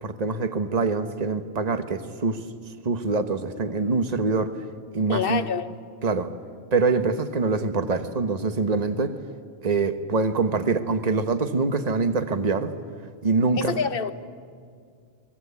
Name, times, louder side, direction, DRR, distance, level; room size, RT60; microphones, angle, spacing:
voice 1, 0.0-2.4 2.8-4.5 4.9-5.4 6.0-6.3 6.7-9.1 9.6-12.7 13.2-13.8, right 4 dB, 35° right, 1.3 m, -24 dB
voice 2, 5.1-5.8 13.6-14.1, left 6 dB, 55° left, 1.1 m, -26 dB
29.5 x 22.0 x 8.3 m
omnidirectional pair, 1.2 m